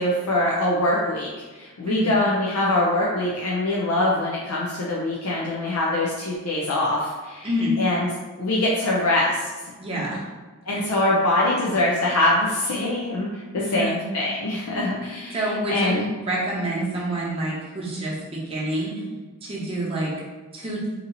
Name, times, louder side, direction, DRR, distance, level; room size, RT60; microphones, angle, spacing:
voice 1, 0.0-7.5 7.8-8.1 8.4-9.5 10.7-15.4 15.7-16.0, left 1 dB, 70° left, -4 dB, 0.5 m, -23 dB
voice 2, 7.4-7.8 9.8-10.2 10.7-10.8 13.5-14.0 15.3-18.9 19.4-20.1 20.5-20.8, right 1 dB, 25° right, -5 dB, 0.8 m, -27 dB
2.8 x 2.7 x 3.9 m, 1.3 s
head